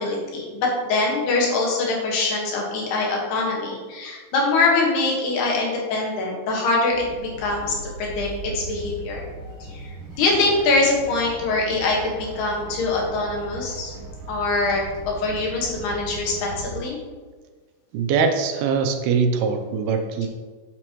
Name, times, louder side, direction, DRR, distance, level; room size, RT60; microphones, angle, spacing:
voice 1, 0.0-8.3 8.5-9.2 9.7-13.9 14.3-14.8 15.2-17.0, left 3 dB, 80° left, -2 dB, 3.6 m, -23 dB
sound 1, 6.9-16.8, right 2 dB, 60° right, 3.2 m, -38 dB
voice 2, 17.9-20.3, right 5 dB, 80° right, 5 dB, 2.5 m, -22 dB
8.7 x 7.5 x 3.1 m, 1.4 s
omnidirectional pair, 4.6 m